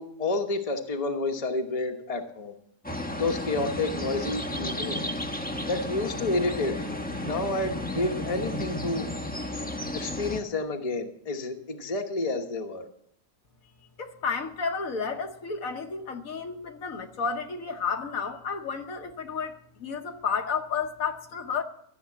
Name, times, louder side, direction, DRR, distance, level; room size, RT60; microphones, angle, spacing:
voice 1, 0.0-2.5 3.2-5.1 5.7-9.1 9.9-12.9, left 2 dB, 25° left, 1.1 m, -30 dB
sound 1, 2.8-10.4, left 1 dB, 5° left, 0.8 m, -33 dB
voice 2, 14.0-21.6, left 5 dB, 65° left, 1.5 m, -32 dB
14.0 x 7.2 x 8.5 m
omnidirectional pair, 1.6 m